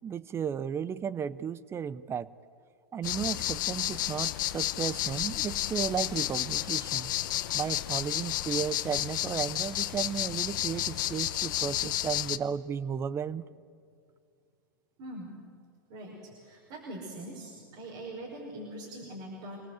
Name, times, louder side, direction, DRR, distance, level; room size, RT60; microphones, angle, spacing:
voice 1, 0.0-2.3 2.9-7.1 7.5-13.4, right 7 dB, 25° right, 19 dB, 0.7 m, -34 dB
sound 1, 3.0-12.4, left 14 dB, 65° left, 0.9 m, -31 dB
voice 2, 15.0-15.3 15.9-19.6, right 1 dB, 50° right, -2 dB, 5.5 m, -42 dB
26.5 x 18.5 x 8.1 m, 2.3 s
hypercardioid pair, 105°, 11 cm